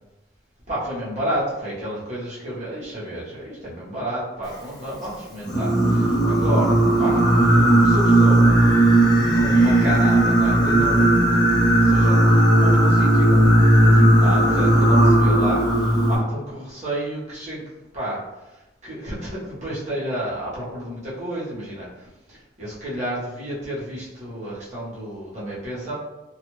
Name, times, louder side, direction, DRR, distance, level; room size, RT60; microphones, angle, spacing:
voice 1, 0.7-7.2 7.7-8.5 9.1-17.7 17.9-18.2 18.5-25.9, right 1 dB, 40° right, -8 dB, 1.0 m, -31 dB
Singing, 5.5-16.2, right 1 dB, 20° left, 0.7 m, -16 dB
2.4 x 2.4 x 3.0 m, 0.98 s
head